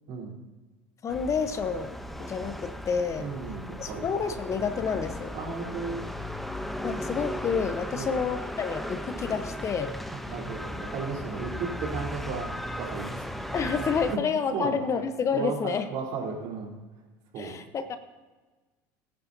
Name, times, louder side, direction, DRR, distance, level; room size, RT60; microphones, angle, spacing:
voice 1, 1.0-3.3 3.8-5.3 6.8-9.9 13.5-15.9 17.4-18.0, left 6 dB, 35° left, 9 dB, 1.0 m, -29 dB
sound 1, 1.1-14.2, left 1 dB, ahead, 0.8 m, -36 dB
voice 2, 3.2-4.1 5.3-6.0 7.9-8.2 10.3-12.5 12.8-13.2 14.1-14.2 14.5-14.8 15.3-16.7 17.3-17.6, right 5 dB, 60° right, -2 dB, 3.8 m, -34 dB
21.5 x 9.8 x 2.8 m, 1.3 s
supercardioid pair, 110°, 9 cm